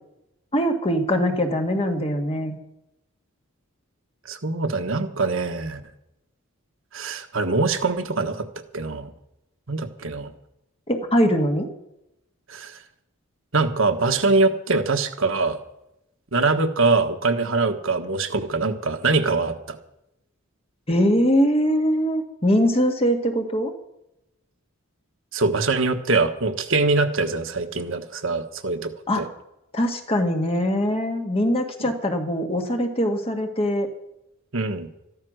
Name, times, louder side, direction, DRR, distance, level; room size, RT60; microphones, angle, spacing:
voice 1, 0.5-2.6 10.9-11.7 20.9-23.7 29.1-29.2 29.7-33.9, equal, 25° left, 4 dB, 1.8 m, -22 dB
voice 2, 4.2-5.8 6.9-8.5 8.7-9.1 9.7-10.3 12.5-12.8 13.5-15.6 16.3-19.8 25.3-29.3 31.8-31.9 34.5-34.9, right 3 dB, 65° right, 7 dB, 1.4 m, -23 dB
13.5 x 13.0 x 6.4 m, 0.86 s
head